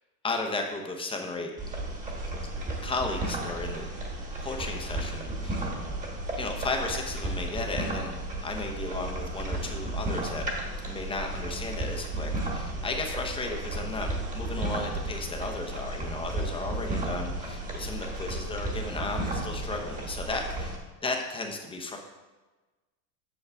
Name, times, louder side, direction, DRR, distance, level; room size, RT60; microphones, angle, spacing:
voice 1, 0.2-1.5 2.8-3.9 4.4-5.7 6.4-8.1 8.4-10.5 10.9-14.1 14.3-20.7 21.0-22.0, left 3 dB, 10° left, 3 dB, 0.8 m, -34 dB
sound 1, 1.6-20.8, right 2 dB, 15° right, 1.4 m, -33 dB
8.3 x 6.3 x 3.4 m, 1.2 s
supercardioid pair, 135°, 47 cm